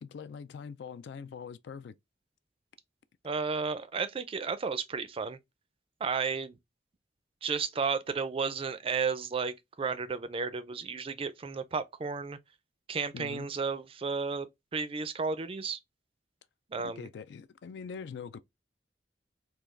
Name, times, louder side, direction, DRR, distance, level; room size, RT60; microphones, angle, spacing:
voice 1, 0.0-1.9 13.1-13.5 16.8-18.4, left 6 dB, 65° left, 0.3 m, -43 dB
voice 2, 3.2-5.4 6.0-6.6 7.4-12.4 12.9-15.8 16.7-17.1, right 5 dB, 30° right, 0.4 m, -33 dB
3.5 x 2.3 x 3.1 m
head